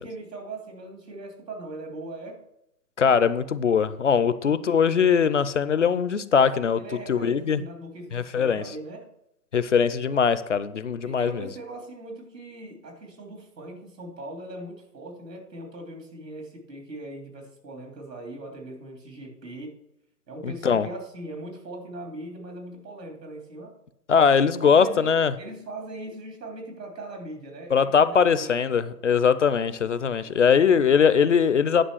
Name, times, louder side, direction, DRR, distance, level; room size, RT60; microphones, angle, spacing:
voice 1, 0.0-2.4 4.3-4.4 6.8-9.1 11.0-19.8 20.3-23.8 24.6-28.9 30.2-31.0, right 2 dB, 75° right, 2 dB, 3.4 m, -40 dB
voice 2, 3.0-6.8 7.1-7.6 8.1-8.6 9.5-11.5 20.4-20.9 24.1-25.3 27.7-31.9, left 6 dB, 50° left, 15 dB, 0.5 m, -21 dB
10.0 x 5.4 x 6.3 m, 0.83 s
hypercardioid pair, 170°, 49 cm